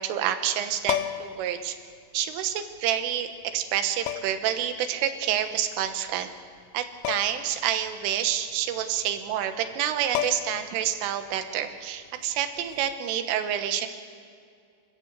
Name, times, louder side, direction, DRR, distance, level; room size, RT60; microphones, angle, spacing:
voice 1, 0.0-1.8 2.1-6.3 6.7-13.9, right 10 dB, 85° right, 8 dB, 3.8 m, -28 dB
sound 1, 0.8-1.4 2.8-2.9 4.1-4.5 7.0-7.5 7.8-7.9 9.7-9.8 10.1-10.7 12.7-12.9, left 12 dB, 80° left, 2.3 m, -30 dB
28.0 x 13.5 x 8.0 m, 2.3 s
omnidirectional pair, 5.6 m